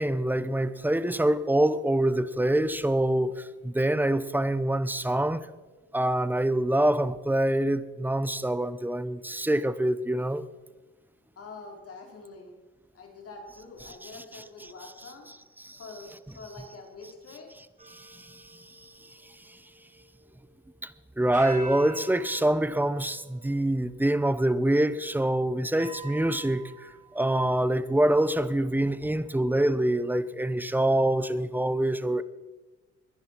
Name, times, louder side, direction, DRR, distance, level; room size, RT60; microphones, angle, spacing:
voice 1, 0.0-5.5 5.9-10.4 14.0-14.1 15.6-15.8 17.9-18.9 19.5-19.6 20.8-32.2, right 1 dB, 5° right, 0.8 m, -25 dB
voice 2, 11.4-12.6 12.9-15.3 15.8-17.5, left 3 dB, 50° left, 4.5 m, -45 dB
sound 1, 17.8-20.8 21.3-24.1 24.8-24.9 25.8-27.3, right 3 dB, 25° right, 2.6 m, -46 dB
22.0 x 10.5 x 4.6 m
cardioid pair, 90°, 30 cm